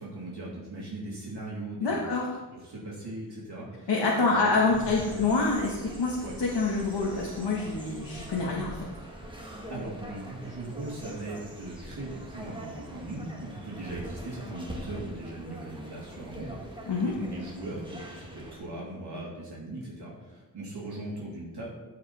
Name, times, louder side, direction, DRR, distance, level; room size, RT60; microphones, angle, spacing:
voice 1, 0.0-2.1 2.5-4.5 5.0-5.3 6.2-6.3 7.8-8.0 9.7-21.7, right 2 dB, 70° right, -6 dB, 3.0 m, -39 dB
voice 2, 1.8-2.3 3.9-8.8 16.9-17.1, left 3 dB, 80° left, -3 dB, 1.5 m, -26 dB
sound 1, 4.7-18.6, right 1 dB, 10° right, 1.6 m, -43 dB
15.0 x 5.1 x 4.2 m, 1.2 s
wide cardioid pair, 100°, 41 cm